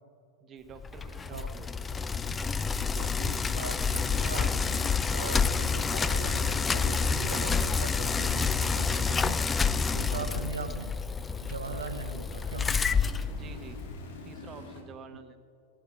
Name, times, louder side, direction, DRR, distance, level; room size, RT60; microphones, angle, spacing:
voice 1, 0.4-1.9 13.3-13.8 14.2-15.4, right 5 dB, 30° right, 7 dB, 1.3 m, -48 dB
sound 1, 0.7-14.8, left 2 dB, 70° left, 2.0 m, -51 dB
Bicycle, 0.8-14.0, left 5 dB, 20° left, 0.4 m, -28 dB
voice 2, 2.9-9.4 9.9-10.9 11.4-12.7 15.1-15.2, right 5 dB, 90° right, 8 dB, 0.6 m, -40 dB
16.0 x 9.3 x 4.9 m, 2.6 s
hypercardioid pair, 100°, 0 cm